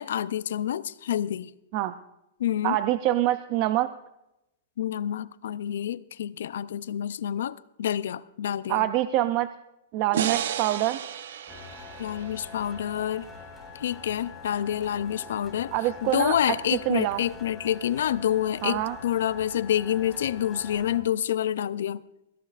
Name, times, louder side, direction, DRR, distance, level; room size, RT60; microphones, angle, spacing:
voice 1, 0.0-1.5 2.4-2.8 4.8-8.9 12.0-13.3 13.7-15.7 16.0-22.0, left 10 dB, 75° left, 17 dB, 0.5 m, -28 dB
voice 2, 2.6-3.9 8.7-9.5 9.9-11.0 15.7-16.4 16.9-17.2 18.6-18.9, right 14 dB, 30° right, 11 dB, 0.4 m, -25 dB
sound 1, 10.1-13.4, right 9 dB, 65° right, 0.7 m, -33 dB
sound 2, 11.5-21.0, left 4 dB, 5° left, 2.7 m, -44 dB
21.5 x 16.0 x 2.5 m, 0.89 s
supercardioid pair, 175°, 0 cm